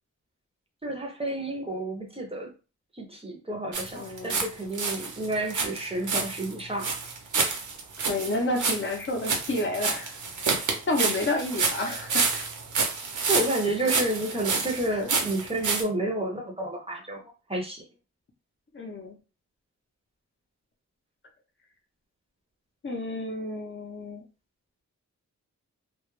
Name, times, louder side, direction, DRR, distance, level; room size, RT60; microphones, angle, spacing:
voice 1, 0.8-2.5 2.9-7.0 10.5-10.6 13.2-17.8, right 1 dB, 20° right, 0.5 m, -30 dB
sound 1, 3.7-4.5 4.7-15.8, right 4 dB, 90° right, 0.6 m, -28 dB
voice 2, 3.9-4.4 8.0-10.2 10.9-12.5 18.7-19.1 22.8-24.2, left 2 dB, 45° left, 0.6 m, -30 dB
2.2 x 2.0 x 3.0 m
wide cardioid pair, 140°, 29 cm